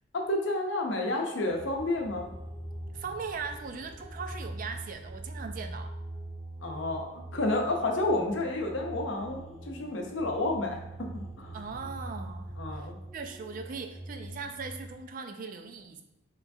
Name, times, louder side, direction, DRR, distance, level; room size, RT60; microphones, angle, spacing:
voice 1, 0.1-2.3 6.6-11.6 12.6-13.0, left 2 dB, 60° left, 2 dB, 0.7 m, -30 dB
sound 1, 1.5-14.9, right 1 dB, ahead, 0.7 m, -43 dB
voice 2, 2.9-5.9 11.5-16.0, right 5 dB, 45° right, 7 dB, 0.3 m, -39 dB
4.6 x 3.0 x 2.6 m, 0.93 s
head